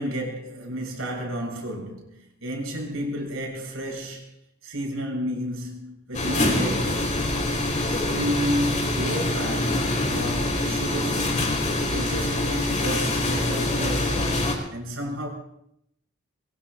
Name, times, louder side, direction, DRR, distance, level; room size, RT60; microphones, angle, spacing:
voice 1, 0.0-4.3 4.6-7.1 7.9-11.5 11.9-14.4 14.7-15.3, equal, 85° right, 7.1 m, -31 dB
sound 1, 6.1-14.5, left 2 dB, 35° left, 3.8 m, -25 dB
24.0 x 23.0 x 2.5 m
head